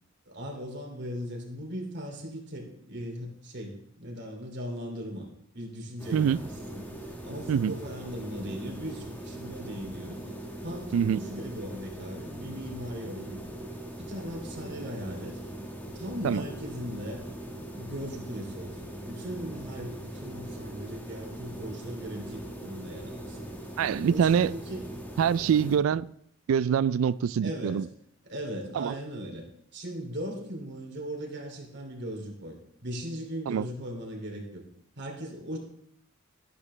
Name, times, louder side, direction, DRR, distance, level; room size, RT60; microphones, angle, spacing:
voice 1, 0.3-5.3 5.5-10.3 10.6-13.4 14.0-15.4 15.9-17.2 17.7-23.5 24.0-24.8 25.5-25.8 27.4-27.9 28.3-29.4 29.7-34.6 35.0-35.6, equal, 60° right, 2.7 m, -38 dB
sound 1, 6.0-25.8, right 1 dB, 10° left, 1.3 m, -41 dB
voice 2, 23.8-24.5 25.2-26.0 26.5-27.9 28.8-28.9 33.5-33.7, right 8 dB, 80° right, 0.3 m, -24 dB
12.0 x 11.0 x 3.2 m
head